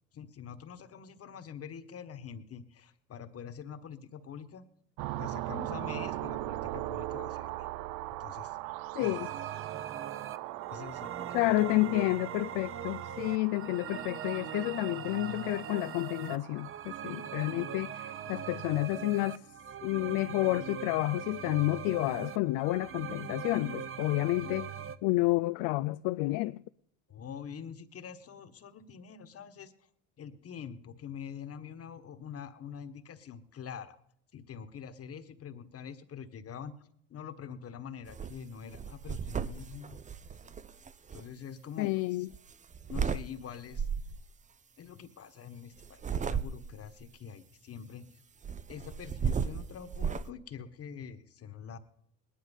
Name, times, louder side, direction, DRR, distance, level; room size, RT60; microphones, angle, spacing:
voice 1, 0.1-4.6 5.2-7.6 8.2-8.6 9.0-9.2 10.7-11.1 11.4-11.7 18.3-18.4 27.1-29.7 30.2-34.0 34.3-40.0 41.1-42.3 42.9-43.9 44.8-48.2 48.7-51.8, left 7 dB, 40° left, 1.5 m, -45 dB
sound 1, 5.0-18.8, right 16 dB, 70° right, 0.8 m, -40 dB
voice 2, 9.0-9.3 11.3-19.4 19.8-24.7 25.0-26.6 41.8-42.3, left 20 dB, 65° left, 0.5 m, -30 dB
sound 2, 9.0-25.0, right 8 dB, 35° right, 1.0 m, -41 dB
sound 3, 38.1-38.4 38.7-41.2 42.3-43.2 43.7-44.2 45.8-46.9 48.4-50.3, right 6 dB, 20° right, 0.6 m, -34 dB
20.0 x 10.5 x 5.5 m
hypercardioid pair, 80°, 36 cm